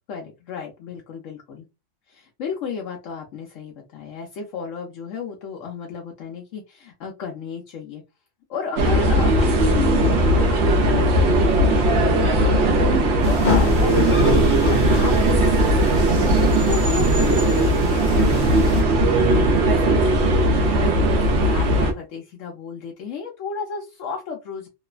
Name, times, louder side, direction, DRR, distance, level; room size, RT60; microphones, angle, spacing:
voice 1, 0.1-1.6 2.1-8.0 8.5-16.3 16.7-24.7, left 6 dB, 80° left, 0 dB, 1.0 m, -33 dB
sound 1, 8.8-21.9, right 1 dB, 65° right, 0.9 m, -18 dB
sound 2, 13.2-18.8, left 2 dB, 45° left, 0.7 m, -27 dB
3.0 x 2.1 x 2.3 m, 0.25 s
omnidirectional pair, 1.3 m